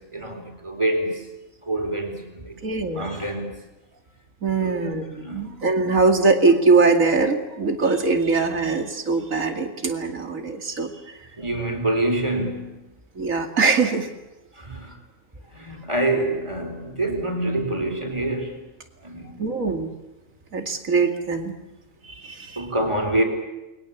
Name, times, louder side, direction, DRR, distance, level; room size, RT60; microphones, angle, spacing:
voice 1, 0.1-1.3 1.7-2.6 2.9-3.5 4.5-5.6 11.4-12.8 14.6-15.0 15.5-18.6 19.0-19.4 22.6-23.2, right 1 dB, 20° right, 4.3 m, -26 dB
voice 2, 2.6-3.0 4.4-10.9 13.2-14.1 19.4-19.9 20.5-21.5 22.2-22.6, right 4 dB, 80° right, 2.8 m, -21 dB
29.0 x 22.0 x 7.2 m
omnidirectional pair, 1.4 m